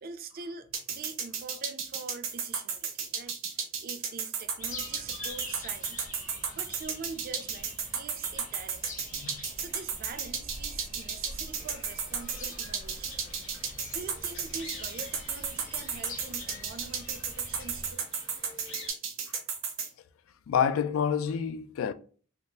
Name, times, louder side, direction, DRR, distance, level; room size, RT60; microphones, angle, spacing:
voice 1, 0.0-6.1 6.5-9.0 9.6-13.1 13.9-18.0, right 4 dB, 45° right, 0.4 m, -44 dB
sound 1, 0.7-19.9, right 7 dB, 80° right, 0.8 m, -33 dB
sound 2, 4.6-17.9, left 2 dB, 40° left, 0.8 m, -45 dB
sound 3, 11.5-18.9, left 3 dB, 70° left, 1.2 m, -50 dB
voice 2, 20.5-21.9, left 7 dB, 85° left, 0.3 m, -28 dB
3.5 x 2.3 x 2.7 m
head